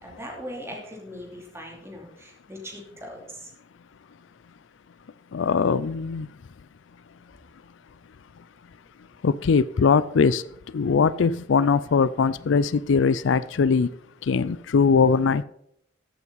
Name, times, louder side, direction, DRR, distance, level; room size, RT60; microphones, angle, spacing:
voice 1, 0.0-3.5, equal, 15° right, 1 dB, 2.8 m, -40 dB
voice 2, 5.3-6.3 9.2-10.4 10.7-13.9 14.3-15.4, left 5 dB, 75° left, 17 dB, 0.4 m, -21 dB
14.5 x 8.3 x 4.0 m, 0.74 s
head